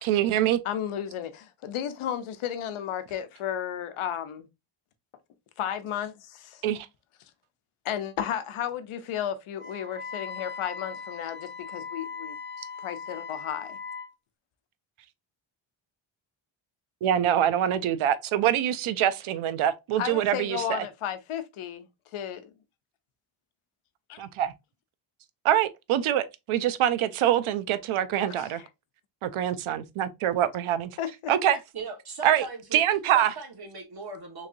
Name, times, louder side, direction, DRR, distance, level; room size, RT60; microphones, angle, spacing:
voice 1, 0.0-0.6 6.6-6.9 17.0-20.8 24.2-24.5 25.4-28.6 29.2-30.9 31.3-31.6 32.2-32.4 32.7-33.3, right 11 dB, 85° right, 0.6 m, -25 dB
voice 2, 0.6-4.5 5.6-6.6 7.8-12.4 12.8-13.8 20.0-21.9 22.1-22.5 24.1-24.2 28.3-28.6 31.0-31.3, left 9 dB, 85° left, 0.7 m, -33 dB
Wind instrument woodwind instrument, 9.6-14.1, left 5 dB, 25° left, 0.6 m, -39 dB
voice 3, 31.7-32.8 33.1-34.5, right 4 dB, 50° right, 1.4 m, -39 dB
3.6 x 3.2 x 2.5 m
cardioid pair, 90°, 48 cm